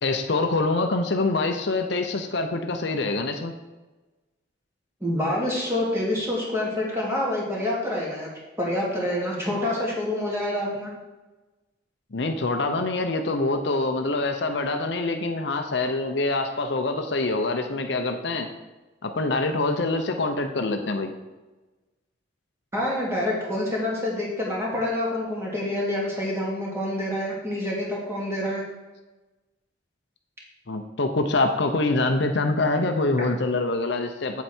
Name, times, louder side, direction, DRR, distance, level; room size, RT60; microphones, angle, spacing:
voice 1, 0.0-3.5 12.1-18.5 19.0-21.1 30.7-34.4, left 2 dB, 60° left, 6 dB, 0.7 m, -25 dB
voice 2, 5.0-8.3 8.6-10.9 22.7-28.6 33.2-33.3, left 1 dB, 15° right, -4 dB, 2.5 m, -27 dB
8.2 x 7.9 x 4.4 m, 1.2 s
head